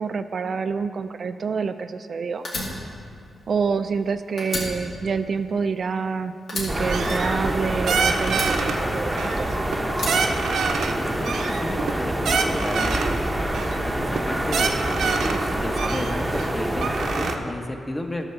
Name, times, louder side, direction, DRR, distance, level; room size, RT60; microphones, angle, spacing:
voice 1, 0.0-2.5 3.5-9.1 9.4-9.7, right 5 dB, 55° right, 10 dB, 0.3 m, -27 dB
Fire, 2.4-4.1 4.4-6.1 6.5-7.8 8.3-9.4 9.9-11.1, left 2 dB, 70° left, 2.3 m, -33 dB
sound 1, 6.7-17.4, right 1 dB, 10° right, 0.8 m, -26 dB
sound 2, 6.9-7.6 7.9-8.8 9.2-9.8 10.1-10.9 11.2-13.2 13.5-13.8 14.1-14.2 14.5-15.4 15.8-17.3, right 5 dB, 85° right, 0.7 m, -26 dB
voice 2, 11.0-13.1 13.8-18.2, left 1 dB, 20° left, 4 dB, 0.9 m, -32 dB
12.0 x 4.5 x 6.8 m, 2.4 s
cardioid pair, 95°, 0 cm